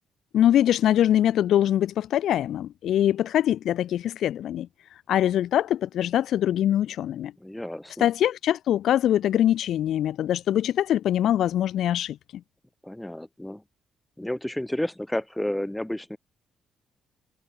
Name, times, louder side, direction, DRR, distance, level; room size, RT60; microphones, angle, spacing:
voice 1, 0.3-4.7 5.1-7.3 8.0-12.2, left 11 dB, 75° left, 0.8 m, -23 dB
voice 2, 7.4-8.1 12.8-13.6 14.2-16.2, left 1 dB, 5° left, 2.3 m, -31 dB
cardioid pair, 90°, 0 cm